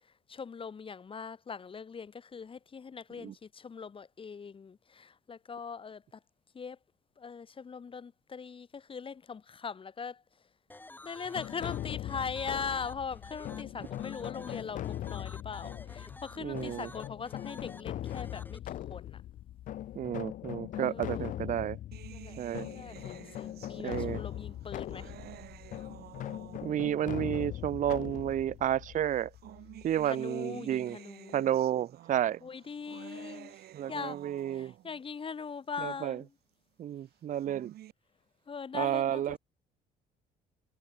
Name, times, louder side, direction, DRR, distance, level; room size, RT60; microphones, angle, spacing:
voice 1, 0.3-6.2 6.5-6.8 7.2-10.2 11.0-19.2 20.7-21.3 22.1-22.4 22.7-25.1 30.1-31.5 32.4-34.2 34.5-36.3 38.5-39.4, left 5 dB, 30° left, 2.5 m, -41 dB
sound 1, 10.7-18.6, left 2 dB, 10° left, 4.7 m, -51 dB
sound 2, 11.3-30.1, left 12 dB, 50° left, 0.5 m, -40 dB
voice 2, 16.4-16.9 20.0-21.8 22.4-22.7 23.8-24.2 26.6-29.3 29.8-31.0 31.3-32.4 33.7-34.7 35.8-36.2 36.8-37.7 38.7-39.4, right 11 dB, 50° right, 0.8 m, -31 dB
sound 3, 21.9-27.0 27.9-28.0 29.1-35.0 37.2-37.9, right 14 dB, 70° right, 6.2 m, -51 dB
cardioid pair, 110°, 17 cm